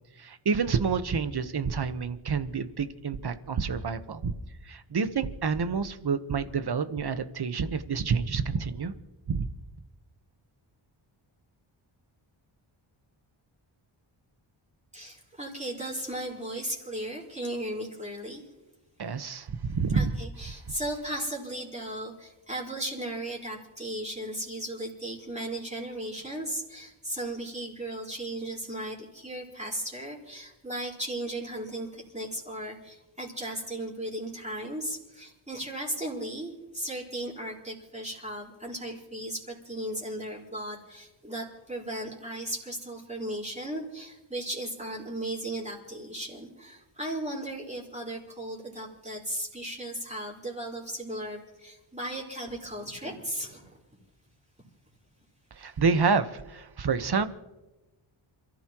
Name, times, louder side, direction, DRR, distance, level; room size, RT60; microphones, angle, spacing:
voice 1, 0.2-4.3 4.7-8.9 9.3-9.5 19.0-20.1 55.6-57.3, right 5 dB, 50° right, 10 dB, 1.3 m, -28 dB
voice 2, 14.9-18.4 19.9-53.8, right 1 dB, 15° right, -3 dB, 4.7 m, -36 dB
28.0 x 14.5 x 3.1 m, 1.0 s
cardioid pair, 80°, 49 cm